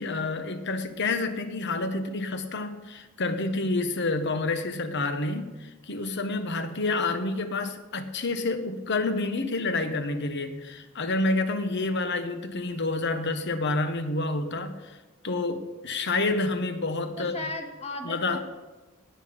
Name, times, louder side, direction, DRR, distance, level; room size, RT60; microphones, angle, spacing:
voice 1, 0.0-15.0 15.2-17.4 18.0-18.4, left 2 dB, 55° left, 9 dB, 1.2 m, -28 dB
voice 2, 17.2-18.4, left 2 dB, 30° left, 2 dB, 1.9 m, -36 dB
18.0 x 8.9 x 5.2 m, 1.2 s
head